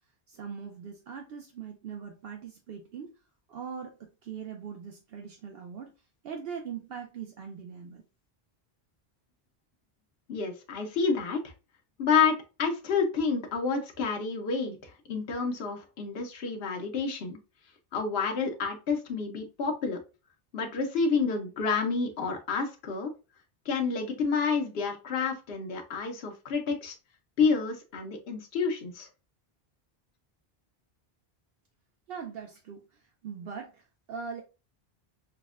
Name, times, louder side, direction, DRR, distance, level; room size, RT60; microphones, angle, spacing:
voice 1, 0.3-3.1 3.5-5.9 6.2-8.0 32.1-34.4, right 6 dB, 70° right, 2 dB, 0.8 m, -41 dB
voice 2, 10.3-11.5 12.0-17.4 17.9-20.0 20.5-23.1 23.7-27.0 27.4-29.1, left 5 dB, 80° left, 3 dB, 1.0 m, -29 dB
5.7 x 2.1 x 2.3 m, 0.31 s
omnidirectional pair, 1.0 m